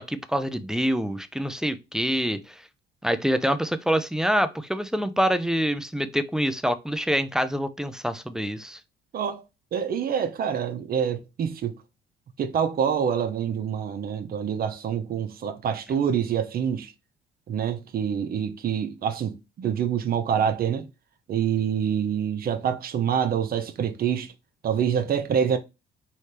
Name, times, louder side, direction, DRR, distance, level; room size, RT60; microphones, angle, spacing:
voice 1, 0.0-2.6 3.0-8.8, equal, 5° right, 0.4 m, -26 dB
voice 2, 9.7-11.7 12.4-16.9 17.5-20.9 21.3-24.3 24.6-25.6, right 8 dB, 50° right, 0.8 m, -26 dB
4.2 x 3.2 x 3.2 m
cardioid pair, 105°, 20 cm